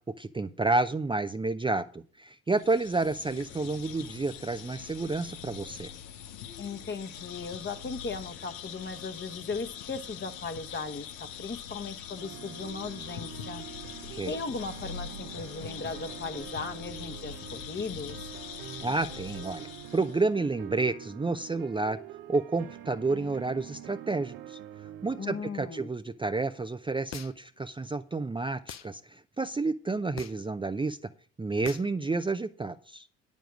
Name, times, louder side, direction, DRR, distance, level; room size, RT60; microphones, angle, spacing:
voice 1, 0.2-5.9 14.1-14.3 18.8-22.0 22.3-24.6 25.0-31.0 31.4-33.1, right 3 dB, 15° right, 8 dB, 0.6 m, -30 dB
sound 1, 2.5-20.3, left 8 dB, 90° left, 0.9 m, -43 dB
voice 2, 6.6-13.6 14.3-18.3 25.2-25.9, left 4 dB, 30° left, 8 dB, 1.2 m, -37 dB
sound 2, 12.2-25.4, right 12 dB, 70° right, 0.8 m, -45 dB
sound 3, 27.1-27.6 28.7-28.9 30.2-30.5 31.6-31.9, left 10 dB, 50° left, 0.7 m, -42 dB
9.1 x 7.2 x 6.2 m, 0.43 s
hypercardioid pair, 55°, 36 cm